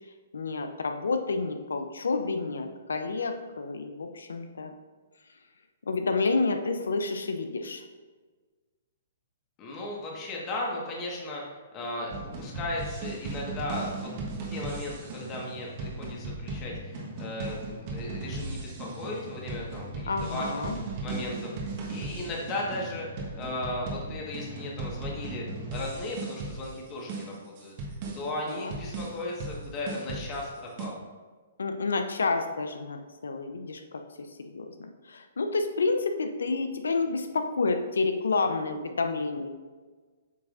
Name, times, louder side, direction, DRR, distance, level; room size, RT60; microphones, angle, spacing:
voice 1, 0.3-4.7 5.9-7.8 20.1-20.8 28.5-28.7 31.6-33.0 33.2-34.0 34.5-39.5, left 3 dB, 80° left, 6 dB, 0.6 m, -29 dB
voice 2, 9.6-11.4 11.7-12.1 12.4-14.1 14.5-20.5 21.0-27.7 28.1-31.0, left 2 dB, 30° left, -3 dB, 1.5 m, -36 dB
sound 1, 12.1-30.9, right 3 dB, 45° right, 1.4 m, -37 dB
8.0 x 4.8 x 2.6 m, 1.4 s
hypercardioid pair, 130°, 0 cm